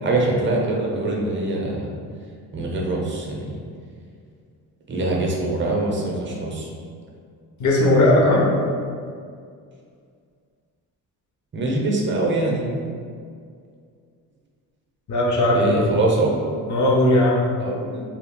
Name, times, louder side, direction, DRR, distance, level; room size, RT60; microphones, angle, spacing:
voice 1, 0.0-1.9 2.5-3.6 4.9-6.7 11.5-12.7 15.5-16.3 17.6-18.0, right 2 dB, 30° right, -1 dB, 0.6 m, -23 dB
voice 2, 7.6-8.5 15.1-15.9 16.7-17.4, left 1 dB, 50° left, -3 dB, 0.7 m, -17 dB
2.3 x 2.1 x 3.6 m, 2.2 s
cardioid pair, 90°, 37 cm